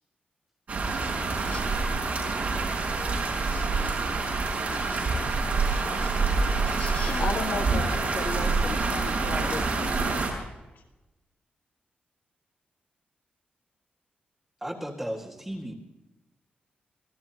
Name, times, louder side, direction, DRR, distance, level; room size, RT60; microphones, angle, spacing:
sound 1, 0.7-10.3, right 3 dB, 50° right, 5.8 m, -27 dB
voice 1, 3.5-3.9 4.7-5.1 5.7-6.1 6.4-7.2, left 4 dB, 50° left, 3.4 m, -44 dB
voice 2, 7.1-10.2 10.7-10.8, left 5 dB, 75° left, 1.8 m, -35 dB
voice 3, 14.6-15.7, equal, 10° right, 2.0 m, -34 dB
26.5 x 17.0 x 3.0 m
wide cardioid pair, 170°, 3 cm